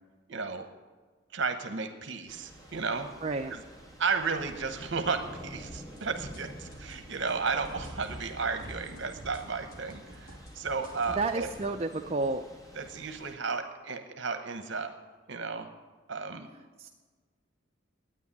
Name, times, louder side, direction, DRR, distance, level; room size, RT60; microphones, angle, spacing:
voice 1, 0.3-0.7 1.3-3.1 3.5-3.6 4.0-11.5 12.7-14.9 15.3-15.7 16.1-16.5, right 4 dB, 60° right, 7 dB, 0.9 m, -33 dB
Thunder / Rain, 2.3-13.3, equal, 15° left, 1.5 m, -48 dB
voice 2, 3.2-3.5 11.2-12.4 16.8-16.9, right 3 dB, 30° right, 4 dB, 0.5 m, -30 dB
sound 1, 5.7-11.7, right 1 dB, 80° left, 2.7 m, -49 dB
10.0 x 9.3 x 9.8 m, 1.4 s
head